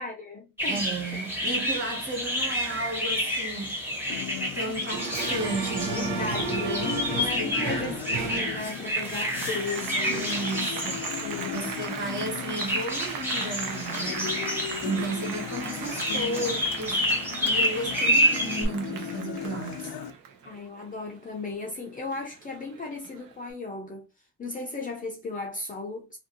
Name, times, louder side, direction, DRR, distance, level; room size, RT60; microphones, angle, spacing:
voice 1, 0.0-0.9 5.9-10.3 11.2-11.7 20.4-24.1 24.4-26.2, left 3 dB, 25° left, 0.4 m, -36 dB
sound 1, 0.6-18.7, equal, 5° right, 0.8 m, -29 dB
voice 2, 0.7-4.0 4.5-7.9 10.1-17.0 17.4-20.0, right 2 dB, 30° right, 1.4 m, -34 dB
Acoustic guitar, 4.1-20.1, left 10 dB, 90° left, 0.5 m, -37 dB
Applause, 4.9-21.7 22.1-23.3, right 6 dB, 75° right, 0.7 m, -37 dB
2.8 x 2.6 x 2.6 m
cardioid pair, 155°, 36 cm